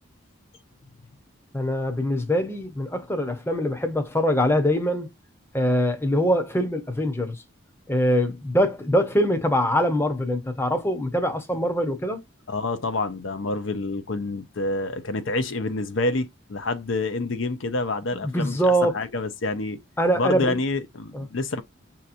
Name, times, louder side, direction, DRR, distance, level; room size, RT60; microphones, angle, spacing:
voice 1, 1.5-5.1 5.5-7.4 7.9-12.2 18.1-18.9 20.0-20.6 21.1-21.3, equal, 10° left, 0.8 m, -23 dB
voice 2, 12.5-19.8 20.2-21.6, left 2 dB, 65° left, 0.6 m, -28 dB
6.4 x 2.9 x 2.5 m
head